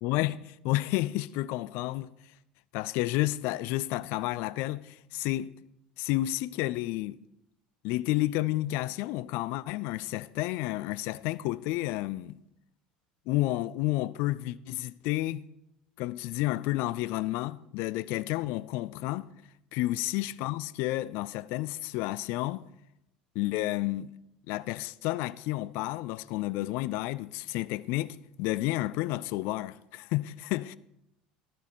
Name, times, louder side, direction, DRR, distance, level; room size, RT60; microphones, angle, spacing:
voice 1, 0.0-2.3 2.7-5.5 6.0-7.2 7.8-12.4 13.3-15.4 16.0-19.3 19.7-22.7 23.4-24.1 24.5-30.8, left 17 dB, 60° left, 0.3 m, -31 dB
12.5 x 10.0 x 4.3 m
hypercardioid pair, 70°, 4 cm